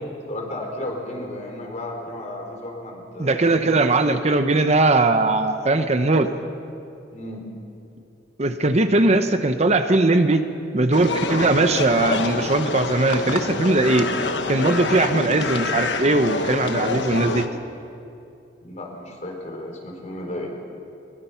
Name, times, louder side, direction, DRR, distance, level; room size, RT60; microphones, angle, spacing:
voice 1, 0.3-3.5 7.1-7.5 18.6-20.5, left 1 dB, 40° left, 1 dB, 4.2 m, -33 dB
voice 2, 3.2-6.3 8.4-10.4 10.7-14.1 14.5-17.4, right 2 dB, 40° right, 8 dB, 0.9 m, -19 dB
sound 1, 10.9-17.5, left 3 dB, 75° left, 1.3 m, -26 dB
22.5 x 21.5 x 5.9 m, 2.6 s
head